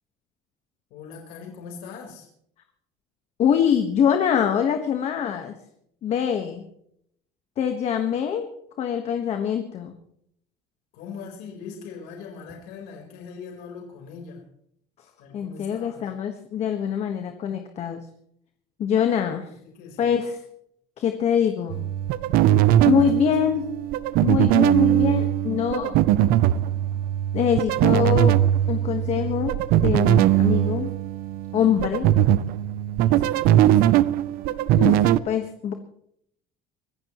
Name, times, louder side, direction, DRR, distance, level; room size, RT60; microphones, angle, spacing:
voice 1, 0.9-2.3 10.9-14.4 15.2-16.1 19.6-20.2 22.7-23.5 33.0-34.1, left 5 dB, 75° left, 0 dB, 4.3 m, -41 dB
voice 2, 3.4-5.6 6.0-6.6 7.6-8.5 8.8-9.9 15.3-18.0 18.8-19.5 20.0-20.4 21.0-21.8 22.8-23.7 24.2-26.0 27.3-28.4 28.7-30.9 31.5-32.1 34.8-35.7, left 8 dB, 40° left, 6 dB, 1.5 m, -24 dB
sound 1, 21.7-35.2, right 12 dB, 65° right, 0.7 m, -20 dB
25.0 x 16.0 x 3.1 m, 0.70 s
cardioid pair, 165°, 16 cm